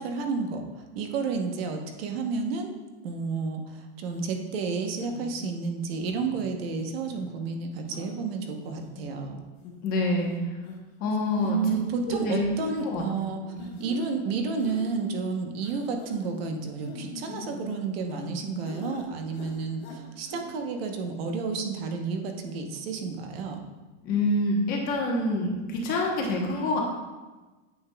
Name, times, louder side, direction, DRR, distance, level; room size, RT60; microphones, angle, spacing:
voice 1, 0.0-2.7 3.0-9.4 11.4-13.5 13.8-23.6, right 4 dB, 55° right, 4 dB, 1.0 m, -31 dB
sound 1, 4.1-4.3 5.0-5.5 6.0-6.5 7.1-7.3 7.9-8.1 8.6-9.1 9.6-9.7 10.1-10.3 10.6-10.8 11.2-11.5 11.9-12.0 12.8-12.9 13.6-14.1 14.6-15.0 15.6-16.3 16.8-18.3 18.6-19.1 19.3-20.0 20.3-20.4, left 3 dB, 60° left, 1.6 m, -43 dB
voice 2, 9.8-10.3 11.0-11.6 12.1-13.0 13.5-13.6 24.0-26.8, left 2 dB, 25° left, 0 dB, 0.9 m, -26 dB
9.3 x 6.9 x 2.3 m, 1.2 s
supercardioid pair, 180°, 36 cm